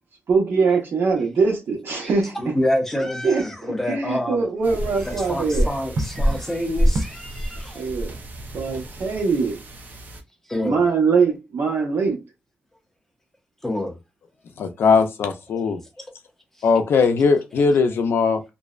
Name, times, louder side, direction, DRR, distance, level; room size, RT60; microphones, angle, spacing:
voice 1, 0.3-2.4 3.2-3.4 3.9-5.7 6.7-6.8 7.7-8.1 8.5-9.6 10.6-12.2, right 4 dB, 70° right, 1.0 m, -22 dB
voice 2, 2.3-4.4 5.0-7.9 10.5-10.8 13.6-14.0, left 1 dB, 10° left, 0.5 m, -27 dB
sound 1, 4.6-10.2, equal, 50° right, 0.5 m, -27 dB
voice 3, 14.6-15.8 16.6-18.4, left 5 dB, 90° left, 0.4 m, -19 dB
2.5 x 2.1 x 2.3 m
wide cardioid pair, 160°, 4 cm